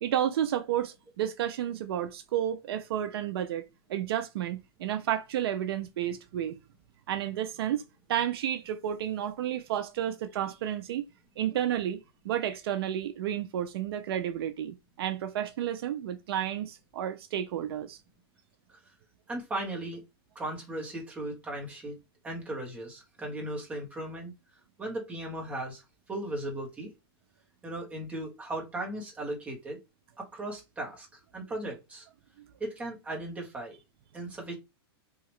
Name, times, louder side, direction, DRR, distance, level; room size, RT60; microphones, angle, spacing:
voice 1, 0.0-3.6 3.9-6.6 7.1-7.8 8.1-11.0 11.4-12.0 12.2-18.0, right 10 dB, 70° right, 0.4 m, -31 dB
voice 2, 19.3-20.0 20.3-21.9 22.2-24.3 24.8-25.8 26.1-26.9 27.6-29.8 30.2-31.1 31.3-32.1 32.6-33.8 34.1-34.6, right 1 dB, 10° right, 1.0 m, -37 dB
2.8 x 2.4 x 3.0 m
supercardioid pair, 150°, 13 cm